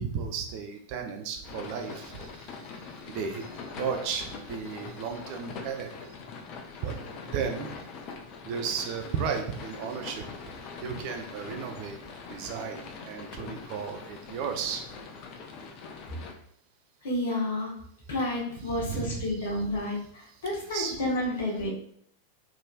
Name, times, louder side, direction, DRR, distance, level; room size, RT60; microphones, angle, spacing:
voice 1, 0.0-6.2 6.8-7.0 7.3-7.8 8.4-12.0 12.3-14.8 18.6-19.6 20.5-21.0, right 6 dB, 45° right, 5 dB, 0.4 m, -35 dB
Rain from inside car, 1.4-16.3, left 5 dB, 40° left, 0.4 m, -43 dB
voice 2, 17.0-17.7 18.1-21.7, left 1 dB, 60° left, -1 dB, 0.9 m, -30 dB
3.4 x 2.5 x 2.3 m, 0.64 s
figure-of-eight pair, 90°, 0 cm